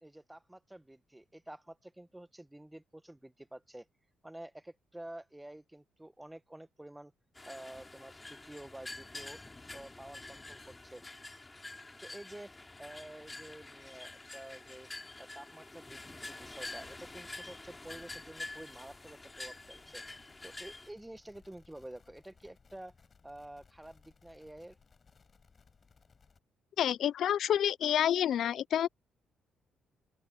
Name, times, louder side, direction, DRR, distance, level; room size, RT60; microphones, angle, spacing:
voice 1, 0.0-3.9 4.2-7.1 7.4-9.4 9.7-11.0 12.0-14.9 15.2-22.9 23.2-24.8, right 1 dB, 10° right, 1.2 m, -50 dB
sound 1, 7.3-20.9, left 2 dB, 20° left, 4.8 m, -47 dB
sound 2, 16.4-26.4, left 5 dB, 35° left, 6.9 m, -64 dB
voice 2, 26.8-28.9, left 10 dB, 70° left, 0.4 m, -28 dB
open air
cardioid pair, 90°, 0 cm